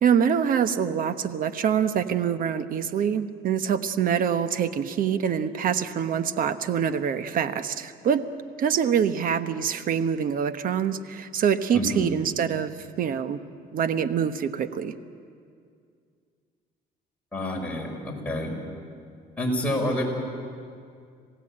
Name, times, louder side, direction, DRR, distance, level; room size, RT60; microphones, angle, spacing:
voice 1, 0.0-8.2 8.6-13.4 13.7-14.9, right 8 dB, 55° right, 11 dB, 1.1 m, -25 dB
voice 2, 11.7-12.1 17.3-18.6 19.4-20.0, left 1 dB, 5° left, -2 dB, 5.7 m, -28 dB
27.0 x 17.0 x 8.8 m, 2.3 s
cardioid pair, 110°, 17 cm